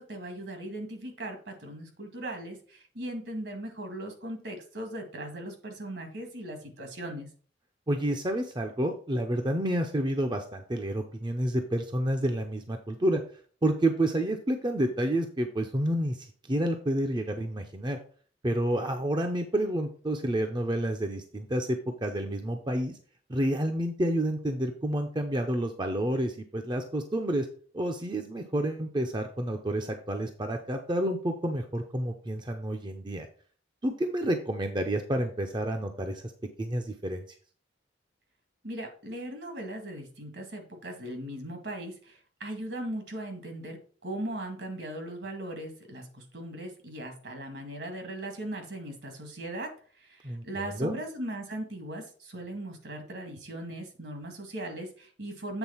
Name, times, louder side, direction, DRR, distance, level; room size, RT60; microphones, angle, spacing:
voice 1, 0.0-7.3 38.6-49.7 50.0-55.6, right 1 dB, 65° right, 5 dB, 1.9 m, -38 dB
voice 2, 7.9-13.2 13.6-18.0 18.4-23.0 23.3-27.5 27.7-33.3 33.8-36.3 36.6-37.2 50.2-51.0, right 1 dB, 25° right, 4 dB, 0.7 m, -29 dB
8.0 x 3.9 x 5.6 m, 0.43 s
head